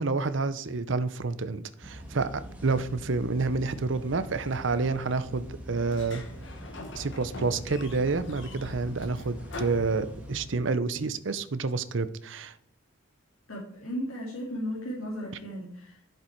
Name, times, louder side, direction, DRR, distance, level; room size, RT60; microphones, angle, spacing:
voice 1, 0.0-6.2 7.0-12.5, right 3 dB, 60° right, 14 dB, 0.6 m, -29 dB
sound 1, 1.8-10.5, equal, 5° right, 1.6 m, -43 dB
Sliding door, 5.9-10.6, left 2 dB, 60° left, 1.4 m, -43 dB
voice 2, 13.5-16.0, equal, 75° left, -3 dB, 2.3 m, -35 dB
10.5 x 7.6 x 4.6 m, 0.70 s
head